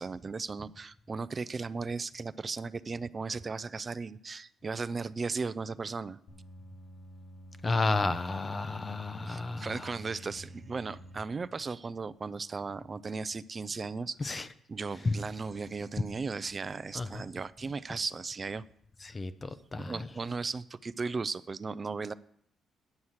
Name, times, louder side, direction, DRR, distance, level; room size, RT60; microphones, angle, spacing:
voice 1, 0.0-6.2 9.3-14.4 14.7-18.6 19.7-22.1, right 4 dB, 35° right, 17 dB, 0.4 m, -36 dB
sound 1, 6.3-11.2, equal, 65° left, 1.7 m, -50 dB
voice 2, 7.6-9.8 14.2-14.4 15.0-15.1 16.9-17.1 19.0-19.9, left 3 dB, 30° left, 12 dB, 0.6 m, -31 dB
9.8 x 6.2 x 7.3 m, 0.67 s
cardioid pair, 90°, 0 cm